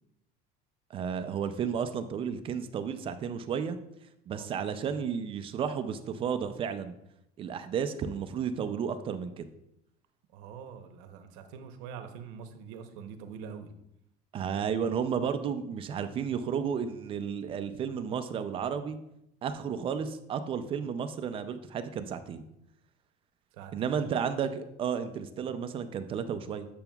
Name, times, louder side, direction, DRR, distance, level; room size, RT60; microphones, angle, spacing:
voice 1, 0.9-3.8 4.3-6.9 7.4-9.5 14.3-19.0 19.4-22.4 23.7-26.7, right 7 dB, 25° right, 9 dB, 0.4 m, -32 dB
voice 2, 4.3-4.7 10.3-13.7 23.5-24.1, right 7 dB, 85° right, 7 dB, 0.9 m, -44 dB
8.7 x 6.8 x 2.3 m, 0.80 s
cardioid pair, 165°, 20 cm